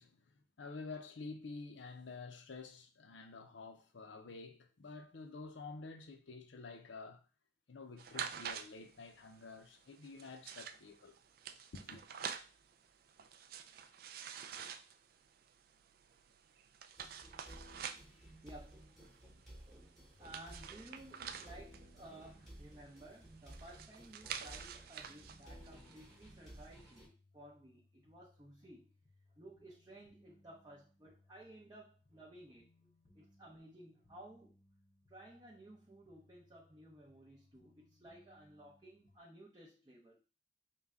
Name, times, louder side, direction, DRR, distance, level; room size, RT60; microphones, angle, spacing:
voice 1, 0.0-7.2 7.7-11.2 11.7-12.0, left 3 dB, 80° left, 0.6 m, -50 dB
sound 1, 8.0-26.9, right 8 dB, 50° right, 0.3 m, -49 dB
sound 2, 17.0-27.1, right 1 dB, ahead, 1.1 m, -56 dB
voice 2, 18.4-18.8 19.7-28.9 29.4-32.9 33.1-34.6 35.1-40.2, right 1 dB, 20° right, 0.6 m, -56 dB
sound 3, 20.1-39.2, left 1 dB, 45° left, 0.6 m, -70 dB
5.5 x 2.2 x 3.5 m
head